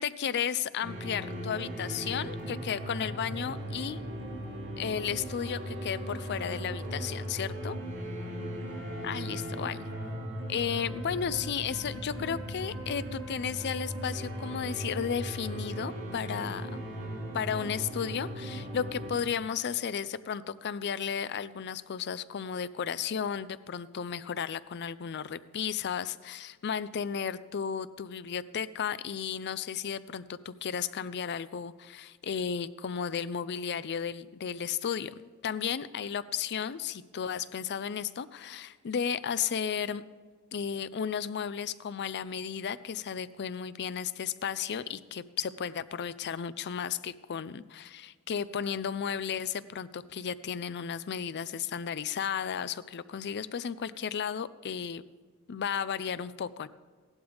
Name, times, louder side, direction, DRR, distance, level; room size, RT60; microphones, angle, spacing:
voice 1, 0.0-4.0 4.8-7.7 9.0-9.9 10.5-16.8 17.3-40.0 40.5-55.0 55.5-56.7, left 7 dB, 50° left, 15 dB, 0.4 m, -34 dB
sound 1, 0.8-19.1, equal, 50° right, 3.5 m, -38 dB
15.0 x 11.5 x 3.5 m, 1.5 s
head